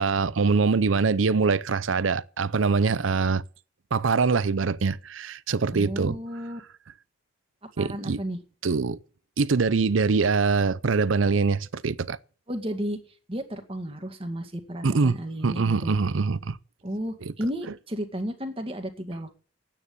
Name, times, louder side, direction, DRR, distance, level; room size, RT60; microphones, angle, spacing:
voice 1, 0.0-3.4 3.9-6.2 7.8-8.2 8.6-9.0 9.4-12.2 14.8-15.2 15.4-16.6 17.2-17.3, right 4 dB, 80° right, 0.6 m, -23 dB
voice 2, 5.7-6.6 7.8-8.4 12.5-13.0 13.3-15.9 16.8-19.3, equal, 30° right, 2.1 m, -33 dB
9.6 x 9.2 x 9.6 m
head